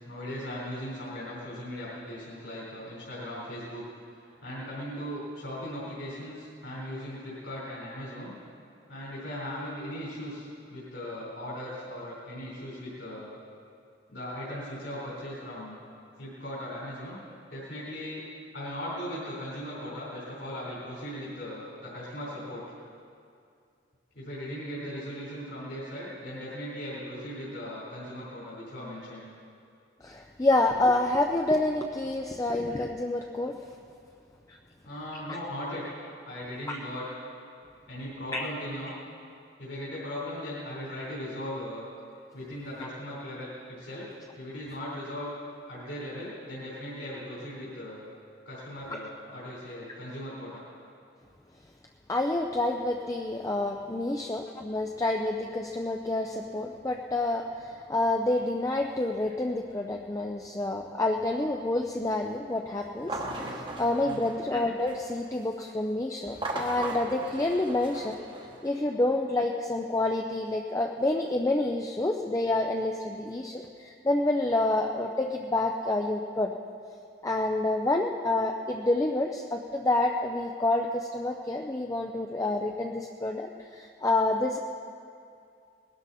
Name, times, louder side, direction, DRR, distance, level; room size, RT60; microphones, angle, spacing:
voice 1, 0.0-3.8 4.4-8.3 8.9-13.3 14.1-15.8 16.2-17.2 17.5-18.2 18.5-22.6 24.1-29.3 34.8-35.8 36.2-37.1 37.9-38.9 39.6-41.9 42.3-44.1 44.4-45.3 45.7-48.0 48.5-50.6 64.0-64.4, equal, 70° left, -7 dB, 3.9 m, -38 dB
voice 2, 30.0-33.5 34.5-34.6 36.7-36.8 38.3-38.4 48.9-49.0 52.1-63.2 63.5-68.2 68.6-76.5 77.2-84.6, left 2 dB, 20° left, 2 dB, 0.5 m, -28 dB
sound 1, 63.0-65.2 66.2-68.8, right 2 dB, 25° right, 1.1 m, -38 dB
20.0 x 12.5 x 4.2 m, 2.4 s
head